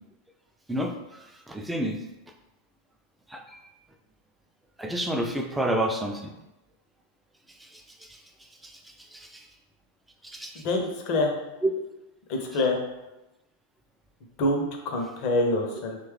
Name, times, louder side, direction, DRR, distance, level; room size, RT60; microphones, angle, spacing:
voice 1, 0.7-2.0 3.3-3.6 4.8-6.3 7.6-8.2 8.6-9.4 10.2-10.6 11.6-11.7, right 1 dB, 5° right, 4 dB, 0.3 m, -30 dB
voice 2, 10.5-11.3 12.3-12.8 14.4-16.0, left 2 dB, 40° left, 2 dB, 0.5 m, -26 dB
3.1 x 2.2 x 3.1 m, 0.96 s
figure-of-eight pair, 90°, 0 cm